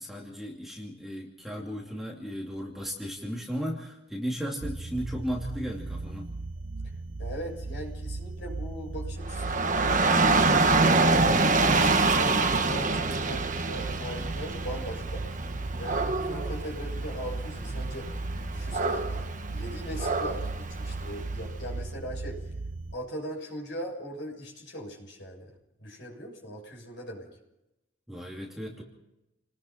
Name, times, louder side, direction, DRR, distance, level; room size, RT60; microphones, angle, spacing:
voice 1, 0.0-6.3 28.1-28.8, equal, ahead, -2 dB, 2.6 m, -35 dB
sound 1, 4.6-22.9, right 2 dB, 75° right, 0.9 m, -37 dB
voice 2, 7.2-10.4 10.9-11.2 11.6-15.3 15.8-18.2 18.5-22.5 22.9-25.5 25.8-27.3, equal, 60° left, 0 dB, 6.9 m, -39 dB
Dog / Rain, 9.2-21.4, right 3 dB, 40° right, 1.5 m, -26 dB
sound 2, 12.2-18.6, equal, 25° left, 3.8 m, -44 dB
29.5 x 20.0 x 4.3 m, 0.93 s
head